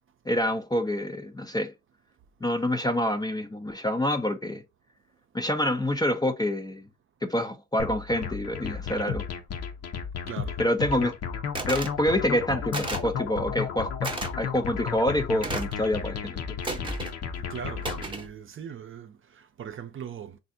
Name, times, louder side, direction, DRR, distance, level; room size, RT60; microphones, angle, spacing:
voice 1, 0.3-1.7 2.4-4.6 5.3-6.9 7.2-9.2 10.6-11.2 11.7-16.6, left 1 dB, 15° left, 0.4 m, -27 dB
sound 1, 7.8-18.1, left 7 dB, 55° left, 0.7 m, -33 dB
voice 2, 10.3-10.6 17.4-20.4, right 8 dB, 45° right, 0.5 m, -40 dB
sound 2, 11.6-12.0 12.7-13.1 14.0-14.3 15.4-15.8 16.6-17.2 17.8-18.3, right 3 dB, 15° right, 0.8 m, -33 dB
3.3 x 2.5 x 2.6 m
cardioid pair, 90°, 30 cm